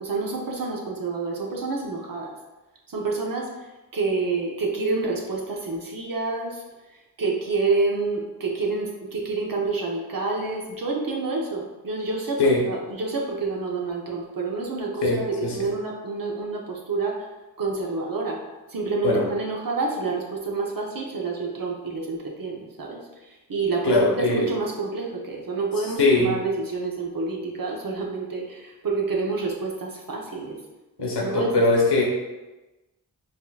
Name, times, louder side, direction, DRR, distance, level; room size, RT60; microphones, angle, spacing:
voice 1, 0.0-2.3 2.9-3.5 3.9-6.6 7.2-12.4 12.7-17.2 17.6-18.4 18.7-23.0 23.5-30.6 31.0-31.5, right 3 dB, 50° right, -1 dB, 1.0 m, -28 dB
voice 2, 15.0-15.7 19.0-19.3 23.8-24.5 25.8-26.4 31.0-32.0, left 2 dB, 70° left, -2 dB, 1.1 m, -21 dB
5.0 x 2.8 x 2.4 m, 1.1 s
cardioid pair, 45°, 42 cm